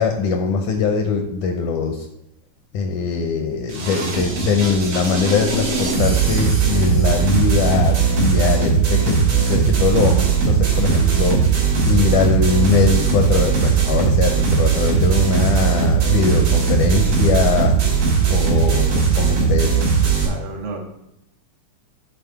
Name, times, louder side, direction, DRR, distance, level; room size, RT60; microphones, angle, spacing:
voice 1, 0.0-2.1 2.7-17.8 18.3-19.8, left 5 dB, 75° left, 5 dB, 1.8 m, -21 dB
sound 1, 3.7-20.3, right 6 dB, 90° right, 4.8 m, -18 dB
voice 2, 20.2-20.8, right 3 dB, 75° right, 0 dB, 3.1 m, -32 dB
10.5 x 4.1 x 4.5 m, 0.85 s
omnidirectional pair, 4.1 m